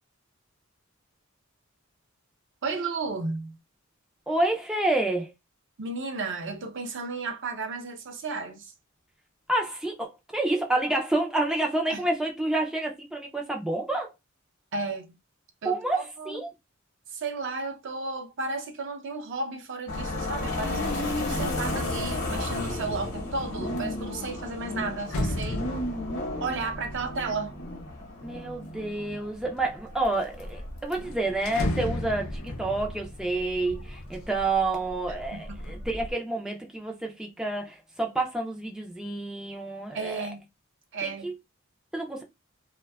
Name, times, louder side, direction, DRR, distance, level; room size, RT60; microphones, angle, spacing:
voice 1, 2.6-3.6 5.8-8.7 11.9-12.0 14.7-15.1 15.6-16.4 17.1-25.6 26.4-27.6 35.1-35.6 39.9-40.5 40.9-41.3, right 3 dB, 60° right, 0.5 m, -33 dB
voice 2, 4.3-5.3 9.5-14.1 15.6-16.5 28.2-40.3 41.0-41.3 41.9-42.2, right 2 dB, 5° right, 0.3 m, -29 dB
sound 1, 19.9-36.1, left 1 dB, 60° left, 0.9 m, -34 dB
sound 2, 23.8-28.8 29.4-30.1 30.4-30.5 30.8-34.7 35.1-35.7, left 1 dB, 80° left, 0.5 m, -35 dB
2.5 x 2.2 x 2.2 m
head